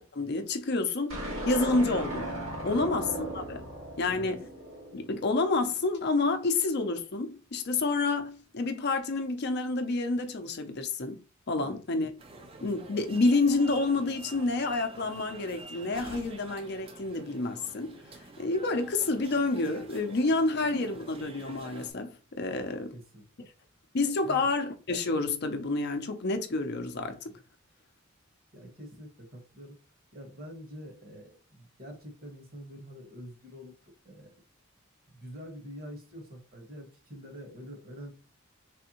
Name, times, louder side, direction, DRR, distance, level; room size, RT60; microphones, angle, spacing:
voice 1, 0.1-2.3 2.6-3.7 4.0-4.5 4.9-11.2 11.5-12.1 12.6-18.0 18.4-22.9 23.9-27.2, left 3 dB, 55° left, 0.6 m, -29 dB
sound 1, 1.1-5.5, right 1 dB, 75° right, 1.9 m, -37 dB
voice 2, 4.0-4.4 11.6-11.8 22.5-22.6 22.9-23.3 24.2-24.5 27.3-27.4 28.5-29.8 30.1-34.3 35.1-38.1, equal, 45° right, 1.4 m, -46 dB
sound 2, 12.2-21.9, right 2 dB, 25° right, 0.5 m, -47 dB
3.4 x 3.3 x 2.9 m
head